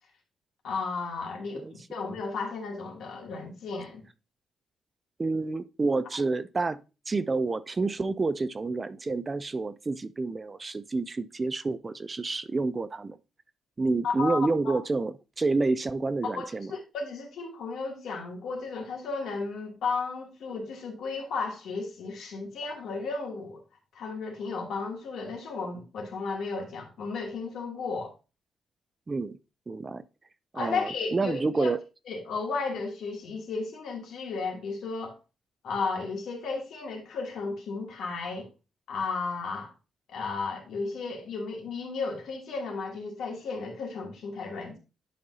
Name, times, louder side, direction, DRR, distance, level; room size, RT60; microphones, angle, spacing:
voice 1, 0.6-1.6 1.9-4.0 14.0-14.4 14.6-14.8 16.2-23.6 23.9-28.1 30.5-31.7 32.1-35.2 35.6-38.5 38.9-39.7 40.1-44.8, left 4 dB, 75° left, 2.6 m, -34 dB
voice 2, 5.2-6.8 7.1-13.2 13.8-16.7 29.1-29.4 29.7-30.0 30.5-31.8, right 3 dB, 20° right, 0.3 m, -29 dB
10.5 x 5.4 x 2.7 m
wide cardioid pair, 160°, 0 cm